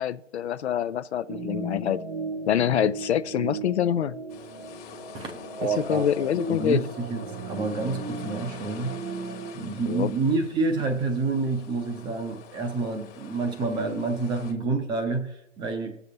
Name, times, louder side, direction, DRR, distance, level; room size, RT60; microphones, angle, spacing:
voice 1, 0.0-2.0 2.5-4.2 5.6-6.8 9.9-10.1, left 10 dB, 65° left, 0.5 m, -26 dB
sound 1, 1.3-9.5, right 3 dB, 90° right, 1.4 m, -36 dB
sound 2, 4.3-14.5, left 7 dB, 30° left, 1.2 m, -45 dB
voice 2, 5.1-6.0 6.5-7.2 7.5-9.0 9.5-16.0, right 3 dB, 15° right, 0.7 m, -28 dB
18.5 x 6.9 x 2.8 m
figure-of-eight pair, 125°, 37 cm